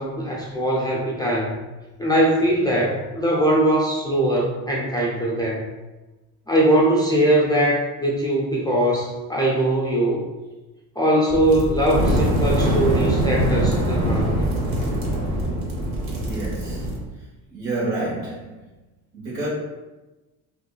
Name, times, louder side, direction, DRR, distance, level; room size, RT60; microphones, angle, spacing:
voice 1, 0.0-1.6 2.0-5.7 6.5-10.2 11.0-14.4, right 1 dB, 10° left, -5 dB, 0.3 m, -21 dB
sound 1, 11.3-17.0, right 1 dB, 55° right, 0.9 m, -23 dB
voice 2, 16.2-17.0 17.5-18.5 19.1-19.5, right 2 dB, 80° right, -6 dB, 1.3 m, -28 dB
2.6 x 2.5 x 2.3 m, 1.1 s
hypercardioid pair, 70°, 46 cm